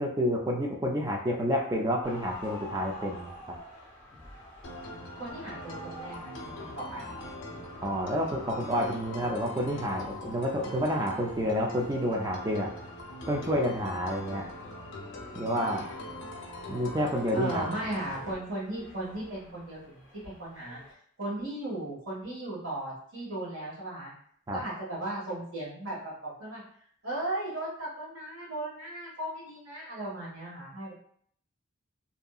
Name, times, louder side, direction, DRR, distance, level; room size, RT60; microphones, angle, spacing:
voice 1, 0.0-3.3 7.8-12.7 13.3-14.4 15.3-15.9 16.7-17.7 24.5-24.6, equal, 20° right, 0 dB, 0.3 m, -29 dB
sound 1, 2.0-20.9, equal, 10° left, 0.7 m, -49 dB
sound 2, 4.6-18.3, left 1 dB, 70° left, 0.6 m, -42 dB
voice 2, 5.1-7.1 17.3-20.8 21.2-24.1 24.5-26.6 27.0-30.9, right 1 dB, 80° right, -7 dB, 1.5 m, -36 dB
2.7 x 2.6 x 2.3 m, 0.62 s
head